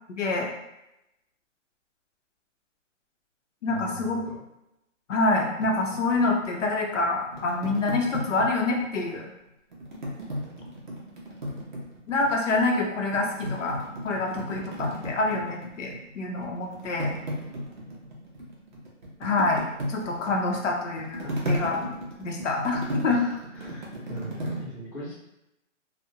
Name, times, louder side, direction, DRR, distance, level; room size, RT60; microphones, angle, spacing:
voice 1, 0.1-0.5 3.6-4.2 5.1-9.3 12.1-13.8 14.0-17.1 19.2-23.2, left 3 dB, 70° left, 0 dB, 0.6 m, -27 dB
voice 2, 3.7-4.4 23.1-25.1, right 1 dB, 15° left, -14 dB, 0.5 m, -41 dB
sound 1, 5.6-9.1 9.7-12.5 12.9-16.1 16.4-24.6, equal, 40° right, 0.5 m, -35 dB
2.7 x 2.0 x 2.3 m, 0.89 s
hypercardioid pair, 170°, 38 cm